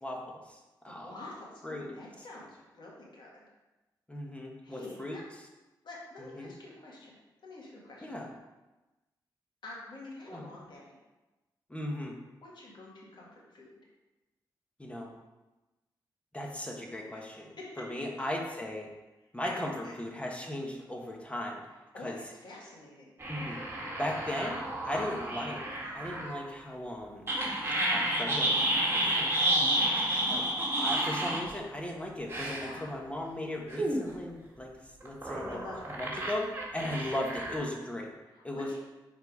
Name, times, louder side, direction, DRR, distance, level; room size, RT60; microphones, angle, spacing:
voice 1, 0.0-1.1 1.6-1.9 4.1-5.2 6.2-6.5 8.0-8.3 10.3-10.4 11.7-12.1 14.8-15.1 16.3-18.9 19.3-21.6 22.0-22.2 23.3-23.6 24.0-25.6 25.9-27.3 27.9-28.6 28.9-29.3 30.3-30.5 30.8-34.7 35.0-35.6 36.0-38.1 38.4-38.7, left 1 dB, 15° left, 0 dB, 1.3 m, -37 dB
voice 2, 0.9-3.4 4.6-5.2 5.8-7.1 7.4-8.1 9.6-11.0 12.4-13.7 17.1-17.8 19.4-19.9 21.9-23.1 24.9-25.1 29.7-30.1 32.6-33.0 35.4-36.0 38.3-38.8, left 2 dB, 65° left, -3 dB, 1.9 m, -47 dB
sound 1, 23.2-26.4 27.3-31.5 32.3-32.7 33.7-34.1 35.0-37.6, right 1 dB, 30° right, 1.7 m, -30 dB
5.1 x 4.1 x 4.8 m, 1.1 s
cardioid pair, 60°, 8 cm